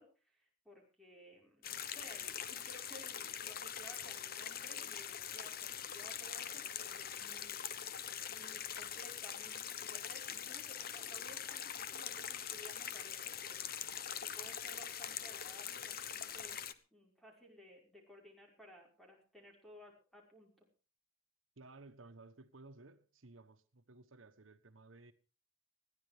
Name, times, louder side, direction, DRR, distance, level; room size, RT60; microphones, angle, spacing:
voice 1, 0.0-8.0 8.3-13.6 14.2-16.6 16.9-20.7, equal, ahead, 5.4 m, -58 dB
sound 1, 1.6-16.7, left 9 dB, 50° left, 1.0 m, -43 dB
voice 2, 21.6-25.1, right 2 dB, 90° right, 1.4 m, -57 dB
20.5 x 15.0 x 3.4 m
head